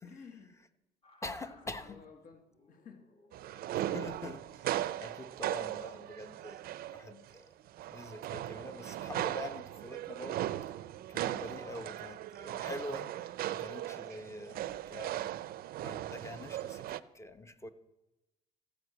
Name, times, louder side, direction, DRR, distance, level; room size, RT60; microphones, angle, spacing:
voice 1, 0.0-0.6 1.4-3.1, left 5 dB, 55° left, 1.2 m, -54 dB
sound 1, 1.0-1.9 2.4-4.6 5.8-6.0, left 2 dB, 35° left, 1.7 m, -63 dB
voice 2, 1.2-2.0 3.8-7.5 7.9-10.5 11.1-15.4 15.8-17.7, left 1 dB, 15° left, 0.8 m, -45 dB
sound 2, 3.3-7.3 7.7-17.0, right 13 dB, 60° right, 0.4 m, -38 dB
14.5 x 5.1 x 8.0 m
cardioid pair, 110°, 17 cm